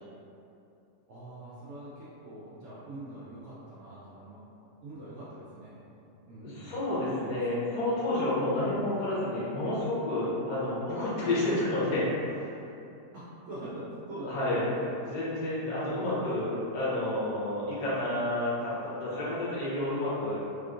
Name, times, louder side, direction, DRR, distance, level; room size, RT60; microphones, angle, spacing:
voice 1, 1.1-4.4 4.8-5.8 6.3-6.8 8.5-8.7 13.1-14.9 15.3-16.3, right 1 dB, 65° right, -10 dB, 0.8 m, -43 dB
voice 2, 6.4-12.5 14.3-14.7 15.1-20.4, left 1 dB, 65° left, -9 dB, 1.2 m, -30 dB
3.6 x 2.5 x 2.4 m, 2.7 s
omnidirectional pair, 1.8 m